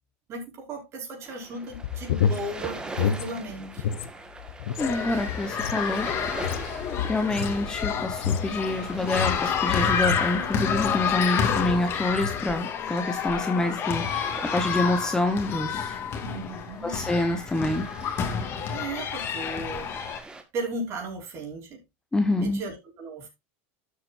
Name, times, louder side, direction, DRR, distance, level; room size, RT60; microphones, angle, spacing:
voice 1, 0.3-4.0 16.2-17.0 18.7-19.9 20.5-21.8 22.4-23.3, right 2 dB, 40° right, 5.4 m, -36 dB
sound 1, 1.2-20.4, right 3 dB, 10° right, 1.7 m, -44 dB
sound 2, 1.7-4.1 4.4-11.1 11.4-11.8 12.1-12.4, left 8 dB, 85° left, 1.0 m, -30 dB
sound 3, 4.8-20.2, left 7 dB, 35° left, 2.2 m, -29 dB
voice 2, 4.8-6.1 7.1-14.3 14.5-16.0 16.8-17.9 22.1-22.6, left 2 dB, 10° left, 1.2 m, -27 dB
12.5 x 7.8 x 2.6 m
supercardioid pair, 130°, 7 cm